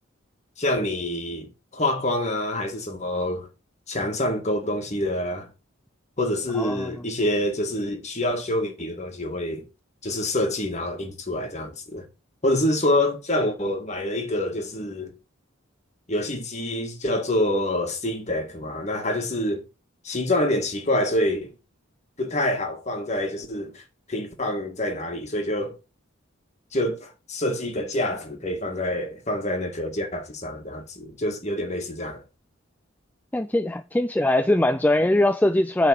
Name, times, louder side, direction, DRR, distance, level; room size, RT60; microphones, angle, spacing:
voice 1, 0.6-3.5 3.9-5.5 6.2-9.7 10.0-12.0 12.4-15.1 16.1-19.6 20.0-21.5 22.2-23.8 24.1-25.8 26.7-32.2, left 1 dB, 35° left, 1.8 m, -26 dB
voice 2, 6.5-6.9 33.3-35.9, left 1 dB, 10° left, 0.3 m, -21 dB
9.0 x 3.9 x 6.2 m
head